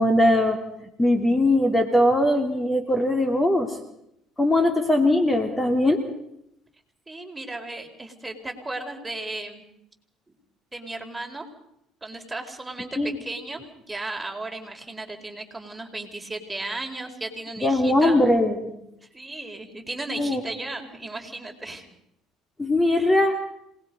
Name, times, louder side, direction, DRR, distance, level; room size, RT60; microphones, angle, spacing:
voice 1, 0.0-3.8 4.4-6.0 13.0-13.1 17.6-18.6 20.2-20.4 22.6-23.4, left 1 dB, 15° left, 5 dB, 2.9 m, -20 dB
voice 2, 7.1-9.6 10.3-10.4 10.7-11.5 12.0-18.2 19.1-21.9 23.0-23.2, right 2 dB, 15° right, 3 dB, 4.3 m, -35 dB
27.0 x 19.5 x 5.3 m, 0.79 s
hypercardioid pair, 70°, 0 cm